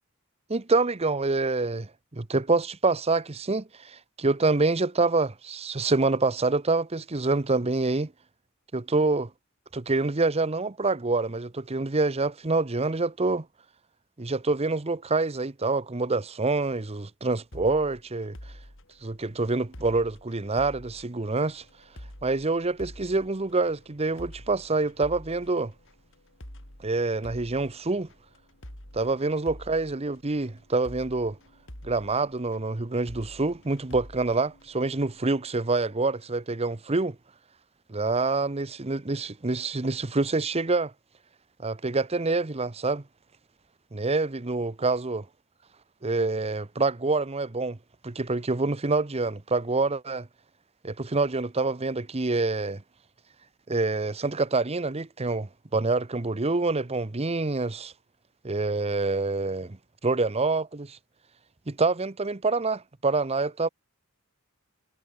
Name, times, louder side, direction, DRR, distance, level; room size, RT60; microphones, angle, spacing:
voice 1, 0.5-8.1 8.7-9.3 9.7-13.5 14.2-18.4 19.0-21.6 22.2-25.7 26.8-28.1 29.0-31.4 31.8-37.2 37.9-40.9 41.6-43.0 43.9-45.2 46.0-47.8 48.0-50.3 50.8-52.8 53.7-57.9 58.4-59.8 60.0-61.0 61.7-63.7, right 3 dB, 30° right, 0.9 m, -26 dB
sound 1, 17.5-35.3, equal, 60° left, 7.1 m, -48 dB
head